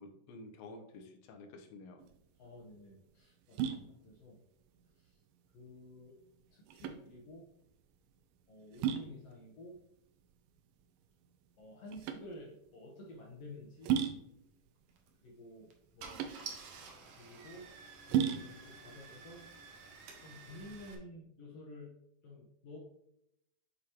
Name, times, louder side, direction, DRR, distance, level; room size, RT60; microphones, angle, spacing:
voice 1, 0.0-2.0, left 2 dB, 85° left, 5 dB, 2.6 m, -51 dB
sound 1, 2.0-20.5, right 9 dB, 85° right, 2.4 m, -39 dB
voice 2, 2.4-4.4 4.9-5.2 5.5-6.1 6.5-7.5 8.5-9.8 11.6-14.0 15.2-16.2 17.1-17.7 18.0-19.5 20.2-21.9 22.2-22.8, left 1 dB, 70° left, -2 dB, 1.5 m, -51 dB
Car / Engine starting, 14.9-15.1 15.7-15.8 16.0-20.9, right 5 dB, 70° right, 1.5 m, -51 dB
8.1 x 4.8 x 2.9 m, 0.79 s
omnidirectional pair, 4.0 m